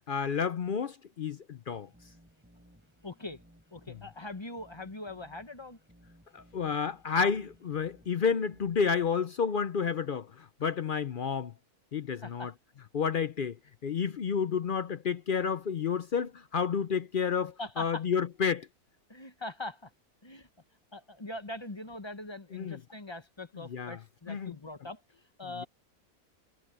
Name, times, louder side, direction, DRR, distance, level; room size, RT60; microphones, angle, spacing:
voice 1, 0.1-1.9 3.9-4.0 6.3-11.5 11.9-12.5 12.9-13.6 13.8-18.7 22.5-22.8 23.7-24.0 24.3-24.5 25.6-25.7, left 6 dB, 60° left, 0.5 m, -30 dB
sound 1, 1.7-9.1, equal, 5° right, 3.9 m, -60 dB
voice 2, 3.0-3.4 3.7-5.8 12.1-12.5 17.6-18.0 19.1-19.9 20.2-20.5 20.9-25.6, left 2 dB, 20° left, 0.9 m, -42 dB
omnidirectional pair, 1.6 m